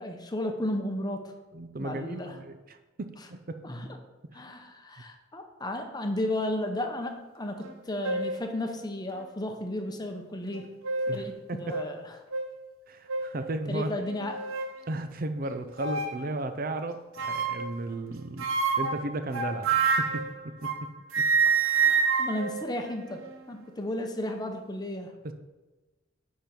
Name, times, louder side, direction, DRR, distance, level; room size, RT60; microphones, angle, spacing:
voice 1, 0.0-1.3 1.8-2.3 3.6-3.9 4.3-10.7 11.1-12.0 13.7-14.4 21.4-25.1, left 1 dB, 20° left, 4 dB, 0.8 m, -34 dB
voice 2, 1.5-3.6 4.3-4.5 11.1-11.8 12.9-13.9 14.9-20.9 21.2-21.3 25.2-25.3, right 2 dB, 45° right, 8 dB, 0.6 m, -35 dB
sound 1, 7.6-7.7 8.0-8.4 9.2-9.3 10.5-11.3 11.7-11.9 12.3-12.5 13.1-13.4 14.0-14.8 15.8-16.2 17.2-17.8 18.4-20.9 21.1-23.5, right 5 dB, 75° right, 0.8 m, -28 dB
10.0 x 4.5 x 5.2 m, 1.1 s
head